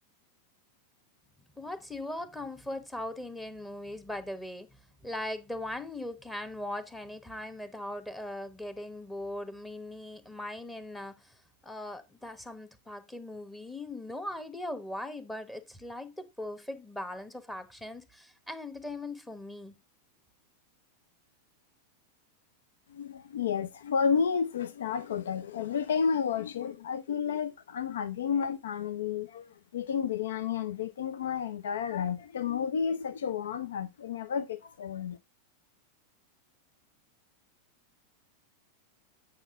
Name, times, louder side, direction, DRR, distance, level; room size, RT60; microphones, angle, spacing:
voice 1, 1.5-11.4 11.6-19.7, left 1 dB, 5° left, 1.1 m, -39 dB
voice 2, 22.9-35.2, left 7 dB, 60° left, 0.5 m, -31 dB
9.0 x 5.6 x 3.6 m
figure-of-eight pair, 90°, 0 cm